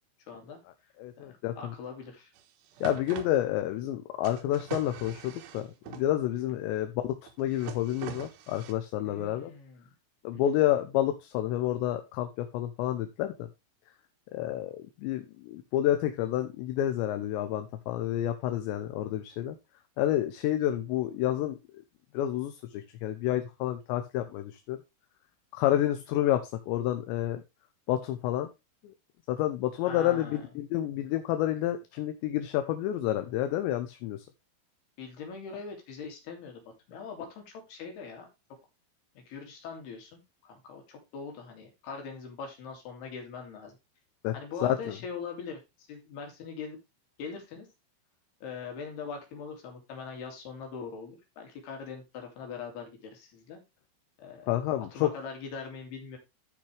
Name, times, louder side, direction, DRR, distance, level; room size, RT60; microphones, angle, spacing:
voice 1, 0.3-0.6 1.2-2.3 9.0-9.9 10.3-10.6 25.8-25.9 29.8-30.5 35.0-36.6 36.9-38.3 39.2-43.8 44.3-45.6 45.9-46.8 47.2-47.7 48.4-53.6 54.2-56.2, left 5 dB, 60° left, 2 dB, 4.2 m, -42 dB
voice 2, 1.0-1.5 2.8-9.5 10.2-13.3 14.3-19.6 20.0-21.6 22.1-24.8 25.5-27.4 27.9-28.5 29.3-34.2 44.2-44.3 44.6-44.8 54.5-55.1, left 12 dB, 80° left, 8 dB, 2.9 m, -29 dB
sound 1, 2.4-2.5 2.7-3.3 4.2-6.0 7.2-8.7, right 9 dB, 75° right, 3.2 m, -43 dB
13.5 x 6.0 x 3.3 m, 0.24 s
omnidirectional pair, 5.4 m